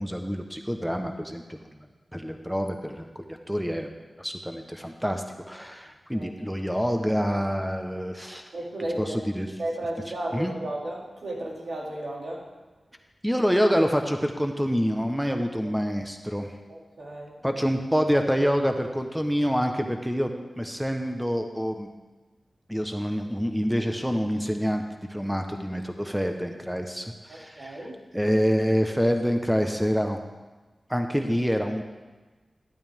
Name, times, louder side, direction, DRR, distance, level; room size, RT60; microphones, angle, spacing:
voice 1, 0.0-1.6 2.1-3.9 4.2-8.5 9.0-9.5 10.3-10.5 13.2-16.5 17.4-20.3 20.6-21.9 22.7-24.8 25.1-30.2 30.9-31.8, equal, 5° right, 4 dB, 1.0 m, -27 dB
voice 2, 8.5-9.2 9.6-12.4 16.7-17.3 27.3-28.0, right 1 dB, 80° right, -3 dB, 2.6 m, -34 dB
12.0 x 12.0 x 3.6 m, 1.2 s
cardioid pair, 55°, 0 cm